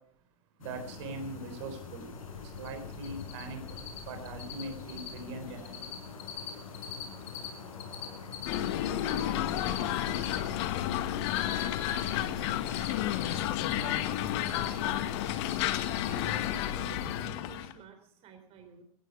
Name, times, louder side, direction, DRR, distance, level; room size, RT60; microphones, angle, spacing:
sound 1, 0.6-17.3, left 5 dB, 70° left, 7.3 m, -44 dB
voice 1, 0.6-2.1 2.4-3.6 4.0-5.9, right 3 dB, 55° right, 4.1 m, -41 dB
Cricket, 2.6-2.7 2.9-3.4 3.7-4.0 4.2-4.6 4.9-5.2 5.4-5.9 6.2-7.5 7.7-10.9 11.3-13.8 14.1-14.9 15.2-16.1 16.3-16.7 16.9-17.2, left 12 dB, 35° left, 4.2 m, -41 dB
sound 2, 8.5-17.7, left 12 dB, 50° left, 1.7 m, -31 dB
voice 2, 12.1-13.4 13.7-15.7 16.1-18.8, right 6 dB, 35° right, 3.7 m, -51 dB
17.5 x 15.0 x 4.9 m
hypercardioid pair, 105°, 18 cm